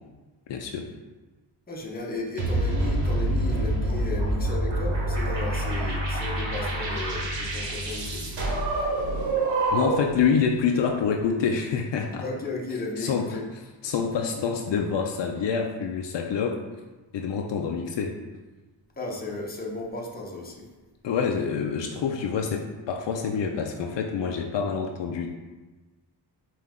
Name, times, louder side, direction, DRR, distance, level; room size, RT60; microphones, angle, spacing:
voice 1, 0.5-0.9 9.7-12.2 13.0-13.4 13.8-16.6 17.1-18.2 21.0-25.3, left 6 dB, 70° left, 3 dB, 0.5 m, -26 dB
voice 2, 1.7-8.2 12.2-13.4 19.0-20.7, left 2 dB, 20° left, -1 dB, 0.8 m, -34 dB
sound 1, 2.4-10.2, right 1 dB, 70° right, 1.2 m, -26 dB
5.5 x 2.5 x 3.6 m, 1.2 s
wide cardioid pair, 115°, 45 cm